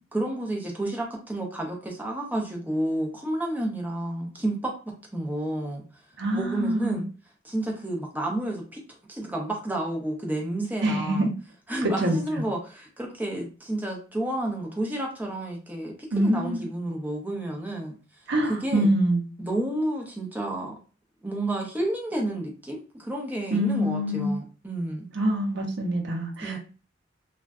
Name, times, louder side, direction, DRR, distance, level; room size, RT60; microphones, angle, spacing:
voice 1, 0.1-4.7 5.1-5.8 6.3-7.0 7.4-8.8 9.1-11.3 11.7-17.9 18.5-18.9 19.4-20.7 21.2-25.1 26.4-26.6, right 1 dB, 10° right, 0 dB, 0.5 m, -30 dB
voice 2, 6.2-7.0 10.8-11.3 12.0-12.2 16.1-16.7 18.3-19.2 23.5-24.4 25.1-26.6, right 1 dB, 60° right, 3 dB, 0.6 m, -25 dB
2.5 x 2.2 x 2.3 m, 0.36 s
head